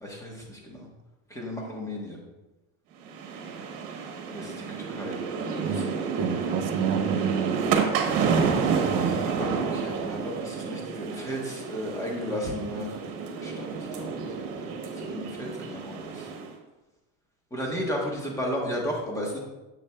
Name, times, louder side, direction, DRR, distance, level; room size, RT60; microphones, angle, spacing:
voice 1, 0.0-0.9 1.3-2.2 4.3-5.2 5.7-5.8 9.4-13.0 13.4-16.3 17.5-19.4, equal, 10° left, -1 dB, 1.2 m, -34 dB
sound 1, 3.0-16.5, right 5 dB, 65° right, 1.2 m, -30 dB
voice 2, 6.2-7.6 8.8-9.2, right 7 dB, 45° right, 4 dB, 0.6 m, -29 dB
7.5 x 6.7 x 2.3 m, 1.1 s
cardioid pair, 145°, 38 cm